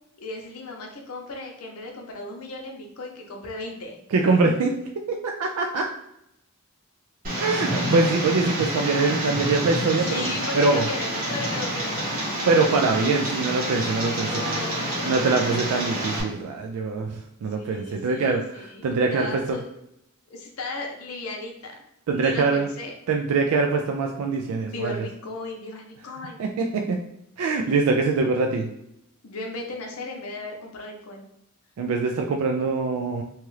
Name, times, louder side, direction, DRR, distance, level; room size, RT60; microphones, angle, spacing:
voice 1, 0.2-4.0 10.0-12.4 14.2-15.5 17.6-19.7 20.3-21.7 22.1-22.9 24.7-26.4 29.2-31.2, left 2 dB, 75° left, 1 dB, 0.7 m, -36 dB
voice 2, 4.1-4.7 5.2-5.9 7.4-10.8 12.5-14.6 15.0-19.6 22.1-22.7 23.1-25.0 26.4-27.0 27.4-28.7 31.8-33.2, right 3 dB, 75° right, 3 dB, 0.3 m, -23 dB
Tick, 7.2-16.2, right 1 dB, 40° right, 1.2 m, -28 dB
2.9 x 2.3 x 3.1 m, 0.80 s
head